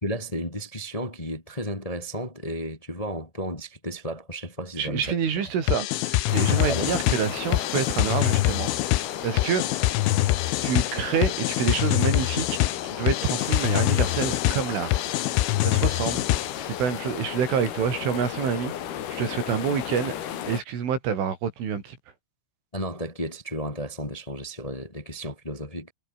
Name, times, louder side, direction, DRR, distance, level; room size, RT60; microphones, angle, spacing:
voice 1, 0.0-5.2 6.7-6.9 22.7-25.9, equal, 10° left, 2.2 m, -33 dB
voice 2, 4.8-8.7 9.2-9.7 10.6-15.2 15.6-16.2 16.6-20.2 20.5-22.0, right 7 dB, 80° right, 6.9 m, -27 dB
sound 1, 5.7-16.7, left 17 dB, 85° left, 3.6 m, -25 dB
sound 2, 6.3-20.6, left 10 dB, 60° left, 3.7 m, -34 dB
omnidirectional pair, 5.5 m